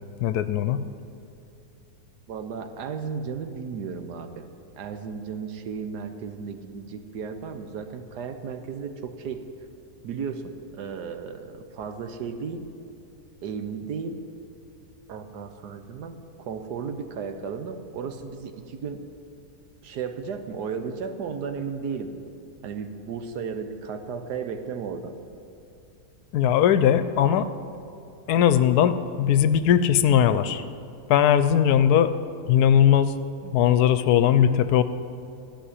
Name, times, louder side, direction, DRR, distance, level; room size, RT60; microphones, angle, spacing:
voice 1, 0.2-0.8 26.3-27.5 28.3-30.6 31.1-32.1 32.5-33.2 33.4-34.8, left 9 dB, 75° left, 12 dB, 1.1 m, -19 dB
voice 2, 2.3-4.5 4.8-9.5 10.0-12.7 13.4-14.2 15.1-19.1 19.8-22.1 22.6-25.2, right 6 dB, 80° right, 8 dB, 1.5 m, -34 dB
14.0 x 6.1 x 9.9 m, 2.7 s
omnidirectional pair, 1.7 m